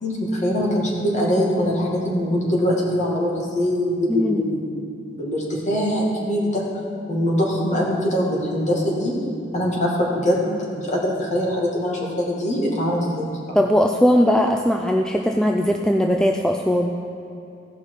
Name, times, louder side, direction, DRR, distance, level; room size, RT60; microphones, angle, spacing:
voice 1, 0.0-4.8 5.1-6.6 7.1-9.2 9.5-13.4, equal, 40° left, -3 dB, 2.1 m, -23 dB
voice 2, 4.1-4.4 13.5-16.9, equal, 5° left, 2 dB, 0.4 m, -19 dB
16.0 x 5.7 x 4.8 m, 2.7 s
head